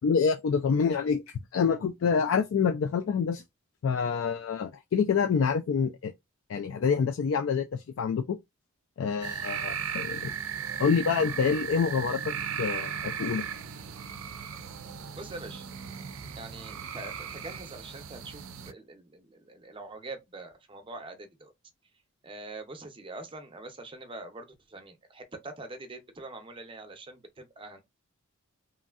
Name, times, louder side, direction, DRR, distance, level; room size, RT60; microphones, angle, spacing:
voice 1, 0.0-3.4 3.8-6.1 6.5-8.4 9.0-10.4 10.8-13.4, left 6 dB, 65° left, 0.3 m, -27 dB
sound 1, 9.2-18.7, right 8 dB, 75° right, 0.4 m, -36 dB
voice 2, 15.1-15.7 16.4-21.5 22.2-27.8, right 2 dB, 25° right, 0.6 m, -44 dB
3.1 x 2.6 x 2.4 m
head